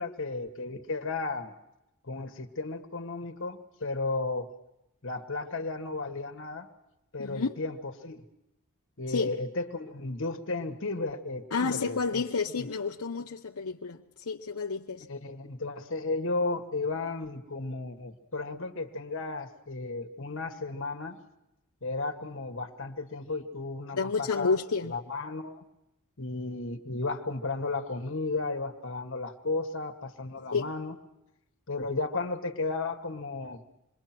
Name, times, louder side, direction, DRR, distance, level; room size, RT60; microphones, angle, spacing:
voice 1, 0.0-1.5 2.0-4.5 5.0-6.7 7.1-8.2 9.0-12.2 12.6-12.7 15.1-21.2 21.8-25.6 26.2-30.9 31.7-33.6, left 3 dB, 60° left, 1.6 m, -34 dB
voice 2, 7.2-7.5 9.1-9.3 11.5-15.1 23.9-24.9 30.5-30.7, left 4 dB, 80° left, 0.8 m, -30 dB
27.0 x 22.0 x 6.0 m
head